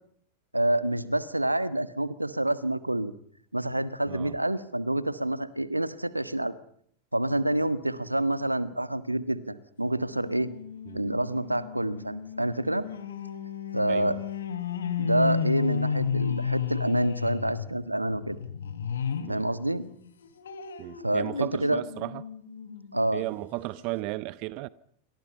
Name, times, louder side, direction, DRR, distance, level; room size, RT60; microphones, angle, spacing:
voice 1, 0.5-3.1 3.5-6.5 7.1-10.5 10.9-12.8 13.7-14.1 15.0-18.4 19.3-19.8 21.0-21.8 22.9-23.2, right 1 dB, 85° right, 1.6 m, -27 dB
sound 1, 9.8-19.4 19.8-22.9 23.4-23.5 23.8-23.9, left 7 dB, 65° left, 3.6 m, -33 dB
voice 2, 10.9-11.2 13.9-14.2 19.3-19.4 20.8-22.2 23.1-24.7, right 20 dB, 45° right, 1.0 m, -35 dB
28.5 x 25.5 x 5.5 m
figure-of-eight pair, 90°, 0 cm